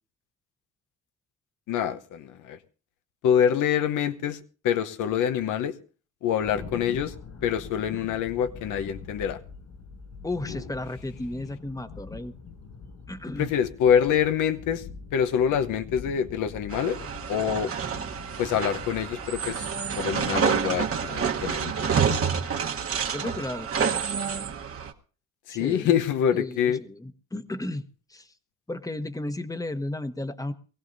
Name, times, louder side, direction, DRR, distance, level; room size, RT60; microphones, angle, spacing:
voice 1, 1.7-2.6 3.2-5.7 6.2-7.1 7.4-9.4 13.4-14.8 15.1-17.0 17.3-17.7 18.4-19.7 20.0-21.9 25.5-26.8, left 8 dB, 85° left, 10 dB, 1.0 m, -25 dB
Thunder, 6.4-22.4, left 4 dB, 65° left, 5.8 m, -44 dB
voice 2, 10.2-12.3 13.1-13.5 23.1-24.2 25.5-25.9 26.3-28.3 28.7-30.5, left 2 dB, 10° left, 11 dB, 1.0 m, -34 dB
sound 1, 16.7-24.9, right 7 dB, 50° right, 1.2 m, -28 dB
23.0 x 16.0 x 2.6 m, 0.37 s
cardioid pair, 90°, 30 cm